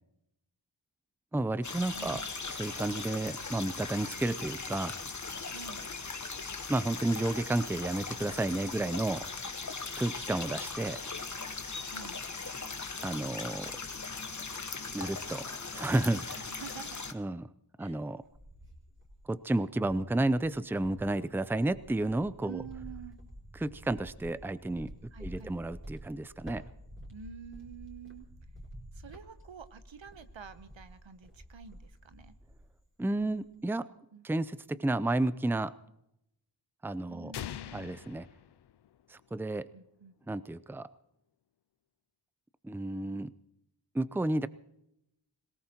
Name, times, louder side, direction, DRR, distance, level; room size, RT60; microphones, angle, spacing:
voice 1, 1.3-2.2 2.5-4.9 6.7-9.3 9.9-11.0 13.0-13.7 14.9-16.4 17.1-17.5 17.8-18.2 19.3-22.6 23.6-24.9 25.2-26.6 33.0-33.9 34.2-35.7 36.8-37.3 37.7-38.3 39.1-39.7 40.3-40.9 42.6-43.3 43.9-44.5, right 2 dB, 5° right, 15 dB, 0.5 m, -31 dB
sound 1, 1.6-17.1, left 4 dB, 40° left, 1.2 m, -39 dB
voice 2, 1.9-2.3 5.5-5.8 11.9-12.2 16.3-17.0 17.8-18.0 22.4-23.2 25.1-25.5 27.1-28.3 28.9-32.3 34.1-34.2 37.1-38.0 39.7-40.1, right 6 dB, 85° right, 11 dB, 1.0 m, -48 dB
Cricket, 18.0-19.4 19.8-32.8 33.1-33.6, equal, 25° right, 5.3 m, -50 dB
sound 2, 37.3-39.3, left 10 dB, 60° left, 0.5 m, -43 dB
26.0 x 18.0 x 3.0 m, 0.82 s
wide cardioid pair, 65°, 45 cm